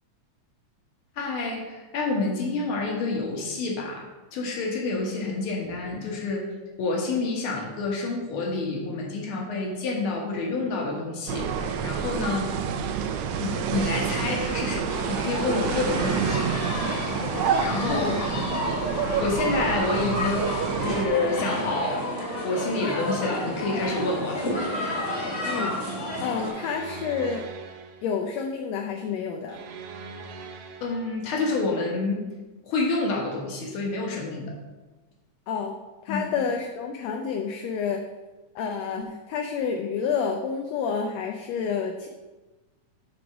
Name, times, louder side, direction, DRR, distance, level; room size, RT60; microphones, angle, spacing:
voice 1, 1.2-4.0 4.3-6.5 6.8-12.5 13.4-16.5 16.8-17.1 17.6-18.2 18.6-18.8 19.2-22.0 22.4-24.5 30.8-32.3 32.6-34.5 36.1-36.3, left 3 dB, 55° left, -1 dB, 2.0 m, -28 dB
sound 1, 11.3-21.1, right 7 dB, 90° right, 2.1 m, -28 dB
sound 2, 14.9-26.5, left 1 dB, 30° left, 1.6 m, -31 dB
voice 2, 17.9-18.2 25.5-27.5 28.0-29.6 35.5-35.7 36.0-38.0 38.5-42.1, left 6 dB, 75° left, 3 dB, 1.6 m, -29 dB
sound 3, 26.4-28.2 29.5-31.2, right 5 dB, 70° right, 1.4 m, -41 dB
7.7 x 3.9 x 6.0 m, 1.2 s
omnidirectional pair, 3.3 m